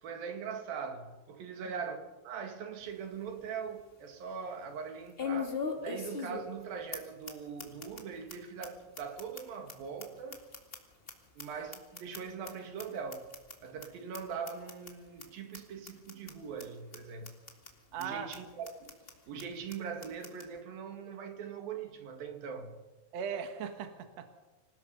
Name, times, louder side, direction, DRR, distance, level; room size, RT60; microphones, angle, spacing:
voice 1, 0.0-10.4 11.4-13.3 13.6-17.3 18.0-19.0 19.3-22.8, right 6 dB, 80° right, 3.7 m, -41 dB
sound 1, 2.8-2.9 3.4-3.5 5.2-6.6 6.9-7.0 7.3-7.4 7.6-8.0 8.3-8.4 8.6-8.7 9.0-11.1 11.4-12.5 12.8-12.9 13.1-13.5 13.8-13.9 14.1-14.2 14.5-14.9 15.2-15.3 15.5-15.6 15.9-16.3 16.6-16.7 16.9-17.0 17.2-17.7 18.0-18.1 18.3-18.4 18.6-19.1 19.4-19.5 19.7-19.8 20.0-20.5, left 5 dB, 20° left, 1.8 m, -39 dB
voice 2, 17.9-18.3 23.1-24.3, right 7 dB, 55° right, 2.4 m, -38 dB
26.5 x 18.0 x 5.5 m
omnidirectional pair, 4.1 m